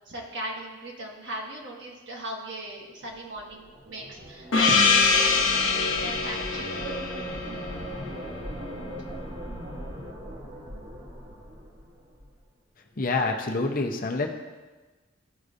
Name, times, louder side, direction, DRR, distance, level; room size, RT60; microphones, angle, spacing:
voice 1, 0.1-7.0, right 1 dB, 65° right, -1 dB, 1.3 m, -38 dB
sound 1, 3.1-12.4, equal, 35° right, 1.2 m, -40 dB
Gong, 4.5-8.9, left 4 dB, 90° left, 0.9 m, -24 dB
voice 2, 13.0-14.3, left 3 dB, 45° left, 2 dB, 0.8 m, -26 dB
13.5 x 4.8 x 2.6 m, 1.3 s
head